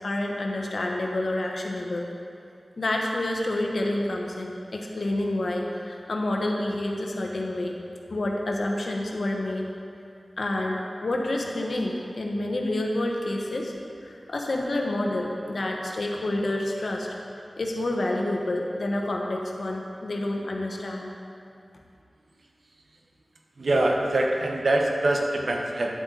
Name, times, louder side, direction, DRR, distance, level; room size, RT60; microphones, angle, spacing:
voice 1, 0.0-2.1 2.8-7.8 8.1-9.7 10.4-13.7 14.0-17.1 17.6-21.1, left 1 dB, 75° left, 0 dB, 1.1 m, -28 dB
voice 2, 23.6-25.9, right 1 dB, 75° right, 0 dB, 1.0 m, -24 dB
10.5 x 8.0 x 3.9 m, 2.5 s
wide cardioid pair, 70°, 0 cm